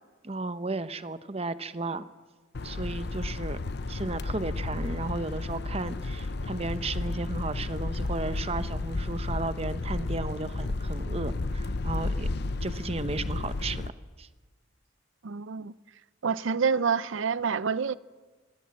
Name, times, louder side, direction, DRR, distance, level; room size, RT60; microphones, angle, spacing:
voice 1, 0.2-2.0 2.6-3.6 3.9-12.3 12.6-13.8 14.2-14.3, right 3 dB, 30° right, 0.8 m, -34 dB
sound 1, 2.5-13.9, left 2 dB, 55° left, 0.7 m, -32 dB
voice 2, 15.2-15.7 16.2-17.9, right 6 dB, 75° right, 0.6 m, -27 dB
25.0 x 15.5 x 8.6 m
head